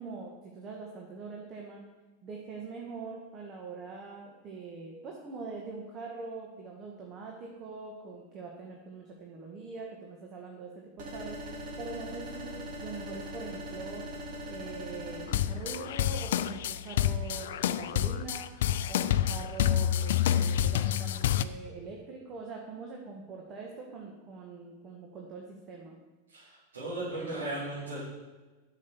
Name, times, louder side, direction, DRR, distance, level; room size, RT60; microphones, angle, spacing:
voice 1, 0.0-1.8 2.2-11.4 11.8-14.0 14.5-18.5 18.9-26.0, right 4 dB, 35° right, 0 dB, 1.7 m, -43 dB
sound 1, 11.0-15.3, equal, 55° right, 3.4 m, -40 dB
sound 2, 15.3-21.4, left 10 dB, 65° left, 0.4 m, -28 dB
voice 2, 26.3-28.0, right 2 dB, 80° right, -11 dB, 4.0 m, -36 dB
8.5 x 6.6 x 7.0 m, 1.2 s
hypercardioid pair, 90°, 0 cm